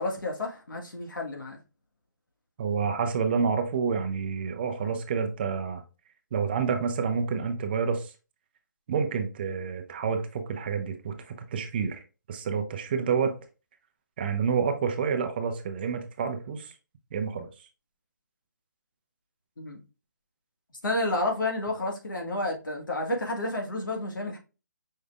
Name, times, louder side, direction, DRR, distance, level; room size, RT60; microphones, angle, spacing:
voice 1, 0.0-1.6 19.6-19.8 20.8-24.4, left 2 dB, 85° left, 1.7 m, -30 dB
voice 2, 2.6-5.8 6.3-8.1 8.9-12.0 12.3-13.4 14.2-16.7 17.1-17.5, right 6 dB, 30° right, 0.6 m, -28 dB
5.4 x 3.3 x 2.4 m
hypercardioid pair, 160°, 10 cm